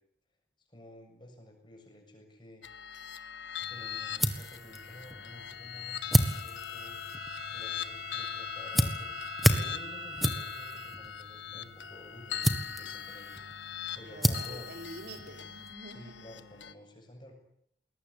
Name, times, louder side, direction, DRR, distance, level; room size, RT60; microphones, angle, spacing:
voice 1, 0.7-2.6 3.7-7.0 7.5-9.1 9.5-13.4 14.0-14.7 15.9-17.3, left 1 dB, 25° left, 2 dB, 7.1 m, -51 dB
sound 1, 2.6-16.7, left 9 dB, 90° left, 1.5 m, -41 dB
sound 2, 3.6-15.7, equal, ahead, 1.6 m, -33 dB
Bowed string instrument, 6.1-11.0, left 3 dB, 55° left, 5.0 m, -43 dB
voice 2, 14.0-16.1, right 1 dB, 60° right, 4 dB, 5.0 m, -46 dB
21.5 x 19.0 x 9.9 m, 0.71 s
head